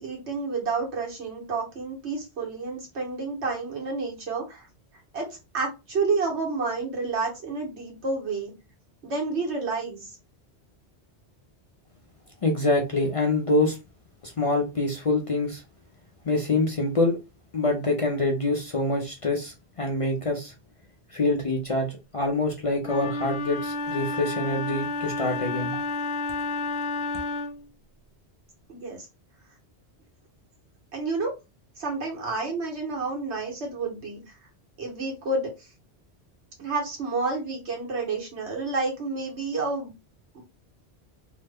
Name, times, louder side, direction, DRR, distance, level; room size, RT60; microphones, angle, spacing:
voice 1, 0.0-4.7 5.1-8.5 9.0-10.2 28.7-29.1 30.9-31.3 31.8-34.2 34.8-35.7 36.6-39.9 40.3-40.4, right 3 dB, 90° right, 1.5 m, -30 dB
voice 2, 12.4-13.8 14.2-15.6 16.3-17.2 17.5-20.5 21.1-25.8, left 2 dB, 45° left, 0.5 m, -25 dB
Wind instrument woodwind instrument, 22.8-27.7, left 3 dB, 80° left, 0.9 m, -30 dB
3.0 x 2.1 x 3.4 m
omnidirectional pair, 1.1 m